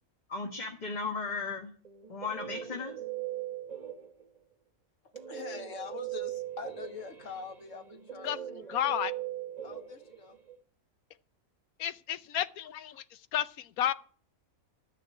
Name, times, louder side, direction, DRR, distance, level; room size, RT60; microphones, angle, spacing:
voice 1, 0.3-1.7 2.1-3.0, left 4 dB, 30° left, 1.4 m, -36 dB
Guitar, 1.8-4.4 5.1-10.6, right 12 dB, 30° right, 1.0 m, -40 dB
voice 2, 5.3-8.5 9.6-10.4, left 5 dB, 60° left, 1.8 m, -44 dB
voice 3, 8.7-9.1 11.8-13.0 13.3-13.9, left 11 dB, 85° left, 1.2 m, -31 dB
12.5 x 6.6 x 9.4 m
omnidirectional pair, 1.5 m